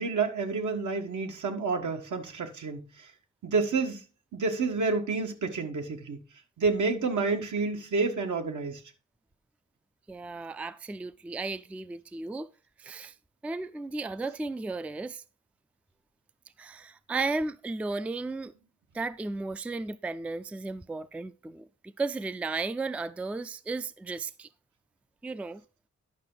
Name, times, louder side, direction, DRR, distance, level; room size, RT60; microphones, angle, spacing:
voice 1, 0.0-3.1 3.4-4.0 4.3-6.2 6.6-8.8, right 4 dB, 80° right, 1.6 m, -29 dB
voice 2, 10.1-12.5 12.8-13.1 13.4-15.2 16.6-18.5 18.9-24.5 25.2-25.6, right 3 dB, 5° right, 0.3 m, -34 dB
10.5 x 5.8 x 3.9 m
wide cardioid pair, 110°, 29 cm